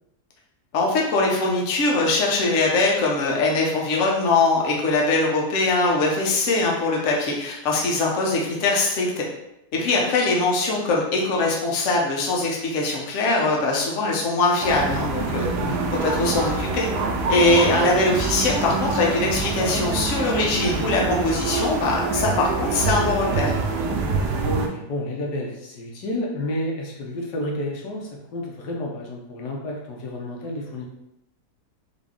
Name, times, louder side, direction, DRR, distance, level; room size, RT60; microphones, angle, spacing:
voice 1, 0.7-9.2 9.7-15.5 16.0-16.9 17.3-23.6, left 3 dB, 55° left, -2 dB, 1.0 m, -22 dB
voice 2, 9.8-10.1 15.6-15.8 24.4-30.9, left 1 dB, 80° left, -1 dB, 1.4 m, -30 dB
sound 1, 14.6-24.7, right 4 dB, 80° right, 1.2 m, -25 dB
3.9 x 2.7 x 3.6 m, 0.85 s
omnidirectional pair, 1.8 m